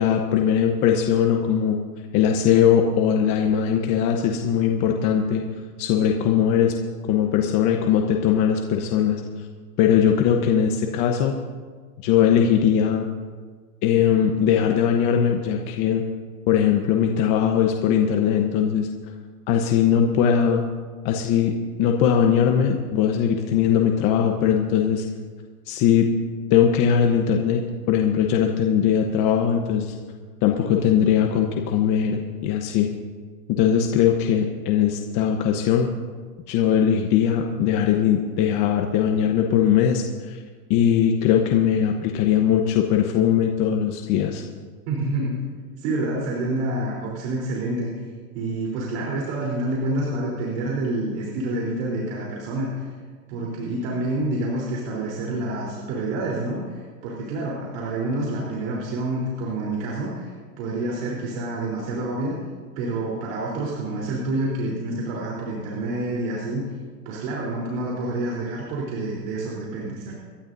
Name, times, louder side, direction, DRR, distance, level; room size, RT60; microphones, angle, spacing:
voice 1, 0.0-1.8 2.1-5.4 5.8-6.7 7.1-9.2 9.8-11.3 12.0-13.1 13.8-16.0 16.5-18.9 19.5-20.6 21.0-21.5 21.8-25.0 25.7-26.1 26.5-29.9 30.4-32.9 33.5-35.9 36.5-40.4 40.7-44.4, left 8 dB, 40° left, 3 dB, 1.1 m, -20 dB
voice 2, 44.9-45.4 45.8-47.9 48.3-52.9 53.3-62.3 62.8-66.7 67.1-70.1, right 2 dB, 55° right, -4 dB, 4.0 m, -28 dB
27.0 x 12.0 x 2.7 m, 1.5 s
supercardioid pair, 135°, 48 cm